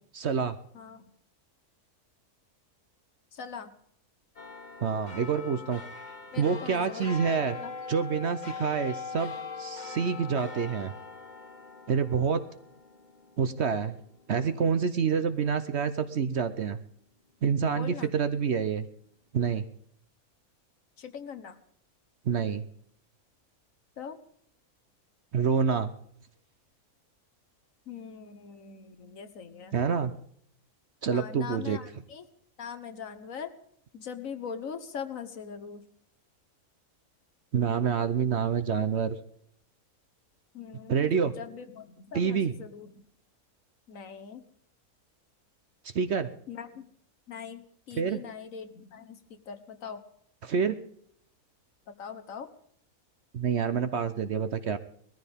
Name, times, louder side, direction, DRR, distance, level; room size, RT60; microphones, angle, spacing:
voice 1, 0.1-0.6 4.8-5.8 6.4-7.6 7.9-10.9 11.9-12.4 13.4-14.0 14.3-16.8 17.4-18.9 19.3-19.6 22.2-22.6 25.3-25.9 29.7-30.1 31.0-31.8 37.5-39.2 40.9-41.3 42.1-42.5 45.8-46.3 47.9-48.2 50.4-50.8 53.3-54.8, right 6 dB, 55° right, 11 dB, 0.9 m, -27 dB
voice 2, 0.7-1.1 3.3-3.7 6.3-7.1 7.5-7.7 17.7-18.1 21.0-21.6 24.0-24.2 27.9-29.8 31.1-32.2 32.6-33.5 33.9-35.8 40.5-42.9 43.9-44.4 46.5-46.9 47.3-50.0 51.9-52.5, left 7 dB, 65° left, 9 dB, 1.5 m, -41 dB
sound 1, 4.4-15.1 15.5-15.6, left 4 dB, 35° left, 1.0 m, -42 dB
20.0 x 14.0 x 3.5 m, 0.66 s
omnidirectional pair, 1.6 m